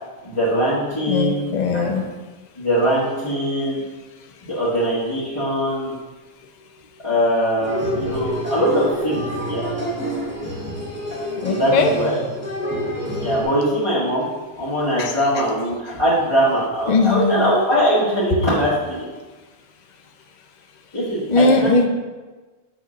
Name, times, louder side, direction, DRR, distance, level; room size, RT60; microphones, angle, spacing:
voice 1, 0.2-2.0 2.6-3.8 4.4-5.9 7.0-9.7 11.5-12.2 13.2-14.3 14.6-19.0 20.9-21.7, equal, 25° left, -12 dB, 1.9 m, -21 dB
voice 2, 1.1-2.1 11.4-11.9 15.0-15.1 16.9-17.5 21.3-21.9, left 3 dB, 45° left, 4 dB, 0.7 m, -19 dB
sound 1, 7.6-13.4, equal, 10° right, 1.5 m, -27 dB
7.9 x 3.5 x 6.2 m, 1.3 s
omnidirectional pair, 1.2 m